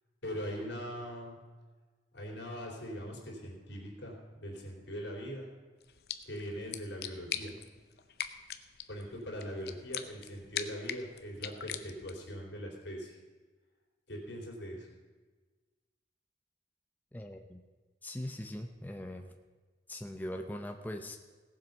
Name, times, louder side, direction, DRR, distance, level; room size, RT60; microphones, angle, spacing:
voice 1, 0.2-1.4 2.1-5.5 6.3-7.6 8.9-13.1 14.1-14.9, equal, 85° left, -1 dB, 3.6 m, -41 dB
sound 1, 5.8-12.3, left 9 dB, 60° left, 0.7 m, -42 dB
voice 2, 17.1-17.6 18.0-19.3 19.9-21.2, left 1 dB, 10° left, 4 dB, 0.6 m, -41 dB
17.0 x 7.7 x 5.4 m, 1.3 s
head